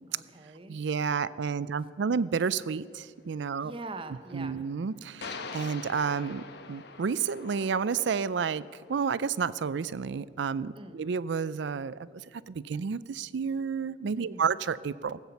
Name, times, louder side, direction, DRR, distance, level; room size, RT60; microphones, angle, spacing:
voice 1, 0.1-0.8 3.6-4.6 10.8-11.0 14.2-14.5, right 2 dB, 25° right, 9 dB, 0.8 m, -43 dB
voice 2, 0.7-3.7 4.3-6.4 6.7-8.6 8.9-12.0 12.5-15.2, right 6 dB, 65° right, 18 dB, 0.4 m, -30 dB
sound 1, 2.5-2.6 5.2-9.5, left 4 dB, 60° left, 0.9 m, -44 dB
18.0 x 8.3 x 7.0 m, 2.2 s
head